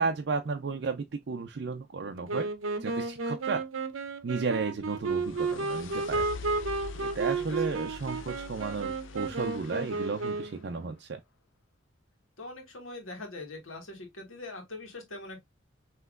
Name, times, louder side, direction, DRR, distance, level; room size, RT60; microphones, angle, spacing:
voice 1, 0.0-2.5 2.8-3.7 4.2-6.3 6.9-11.2, right 4 dB, 55° right, 0.4 m, -33 dB
Wind instrument woodwind instrument, 2.3-10.7, right 3 dB, 85° right, 0.7 m, -32 dB
sound 1, 4.6-10.6, left 4 dB, 70° left, 0.5 m, -45 dB
voice 2, 7.5-7.8 12.4-15.4, left 2 dB, 90° left, 1.7 m, -42 dB
5.6 x 3.0 x 2.4 m
head